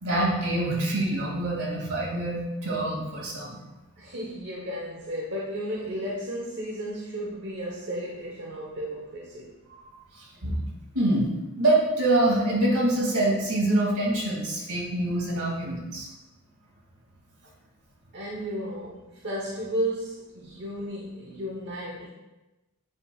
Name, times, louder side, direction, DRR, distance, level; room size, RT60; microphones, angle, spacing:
voice 1, 0.0-3.6 9.7-9.9 10.2-10.6 10.9-11.3 11.6-16.1, right 1 dB, 80° right, -3 dB, 2.4 m, -25 dB
voice 2, 4.0-9.5 18.1-22.1, equal, 50° right, -4 dB, 1.0 m, -33 dB
9.1 x 6.5 x 2.4 m, 1.0 s
head